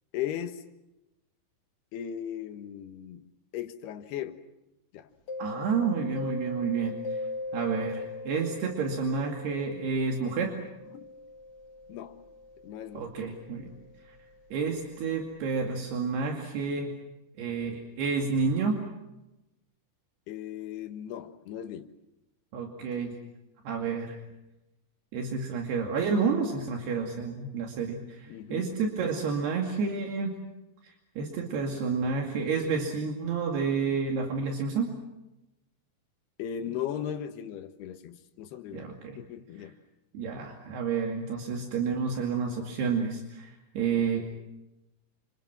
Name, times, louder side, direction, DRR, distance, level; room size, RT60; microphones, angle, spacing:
voice 1, 0.1-0.6 1.9-4.4 4.9-5.1 10.9-11.1 11.9-12.2 12.6-13.1 20.3-22.0 28.3-28.7 36.4-38.9 39.2-39.8, left 10 dB, 75° left, 3.3 m, -37 dB
Mallet percussion, 5.3-14.9, left 2 dB, 90° left, 1.2 m, -41 dB
voice 2, 5.4-7.0 7.5-10.6 12.9-13.7 14.5-16.9 17.4-18.8 22.5-23.1 23.7-24.2 25.1-30.4 31.2-34.9 38.7-39.2 40.1-44.3, right 5 dB, 70° right, 4.4 m, -30 dB
29.5 x 27.5 x 6.0 m
omnidirectional pair, 4.8 m